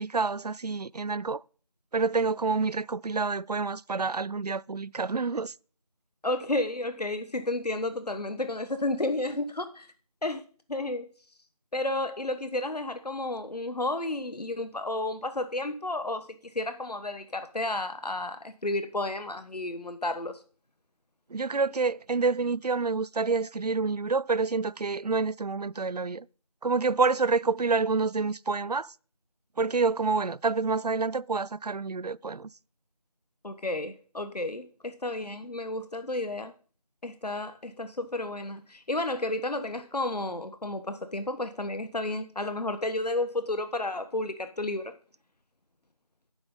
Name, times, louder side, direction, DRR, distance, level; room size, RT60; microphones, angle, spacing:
voice 1, 0.0-1.4 1.9-5.5 21.3-26.2 26.6-28.9 29.6-32.5, right 4 dB, 80° right, 0.5 m, -28 dB
voice 2, 6.2-9.9 10.2-10.4 10.7-11.1 11.7-20.4 33.4-36.5 37.0-44.9, left 2 dB, 85° left, 1.3 m, -32 dB
12.0 x 9.6 x 3.8 m
figure-of-eight pair, 175°, 20 cm